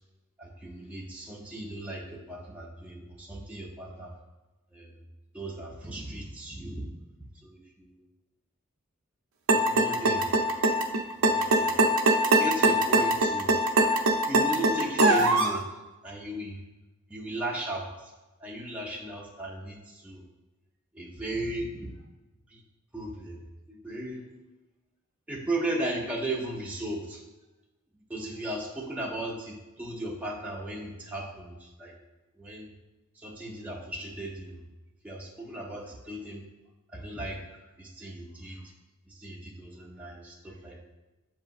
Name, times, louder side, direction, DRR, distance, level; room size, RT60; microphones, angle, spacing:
voice 1, 0.4-4.1 4.7-4.9 5.3-6.9 7.4-8.0 9.5-10.3 11.2-11.8 12.4-13.6 14.3-15.7 16.0-16.6 17.1-17.9 18.4-20.2 20.9-21.9 22.5-22.6 22.9-23.4 23.7-24.2 25.3-27.2 28.1-32.0 32.4-32.7 33.2-34.6 35.0-36.5 36.9-37.4 37.8-38.6 39.1-40.8, right 1 dB, 5° right, -3 dB, 0.5 m, -36 dB
sound 1, 9.5-15.6, right 1 dB, 75° right, 0.5 m, -22 dB
7.4 x 2.7 x 2.4 m, 1.1 s
head